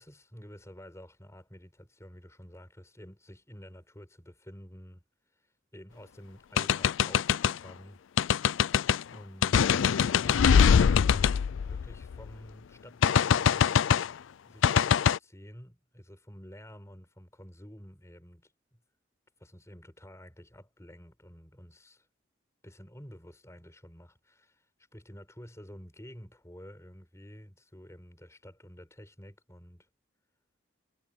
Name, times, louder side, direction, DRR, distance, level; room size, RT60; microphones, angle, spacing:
voice 1, 0.0-5.0 5.7-8.0 9.1-9.6 11.6-13.9 14.4-18.8 19.4-22.1 22.6-24.7 24.9-29.9, equal, 15° left, 7.1 m, -50 dB
sound 1, 6.6-7.6 8.2-9.0 9.4-12.3 13.0-14.1 14.6-15.2, left 7 dB, 75° left, 0.4 m, -23 dB
head